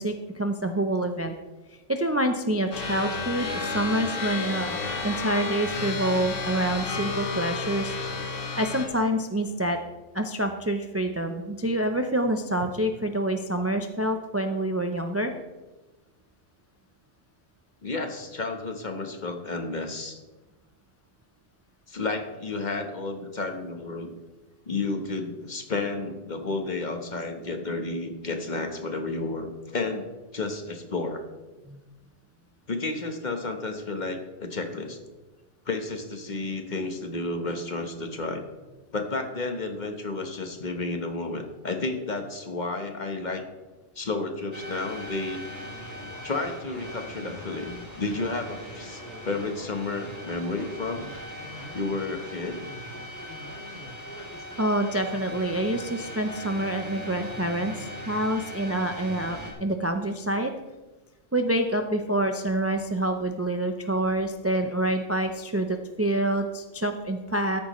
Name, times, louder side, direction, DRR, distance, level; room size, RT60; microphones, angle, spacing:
voice 1, 0.0-1.3 1.9-8.0 8.6-9.8 10.1-15.3 31.7-31.8 54.6-60.5 61.3-67.6, right 1 dB, 20° right, 6 dB, 0.4 m, -27 dB
sound 1, 2.7-8.9, left 4 dB, 90° left, 1.8 m, -31 dB
voice 2, 17.8-20.2 21.9-24.2 24.7-31.2 32.7-35.0 35.7-38.4 38.9-43.4 43.9-45.4 46.2-51.1 51.7-52.7, left 3 dB, 40° left, 5 dB, 1.2 m, -31 dB
sound 2, 44.5-59.5, equal, 15° left, 2.5 m, -40 dB
13.5 x 10.5 x 3.1 m, 1.2 s
omnidirectional pair, 1.2 m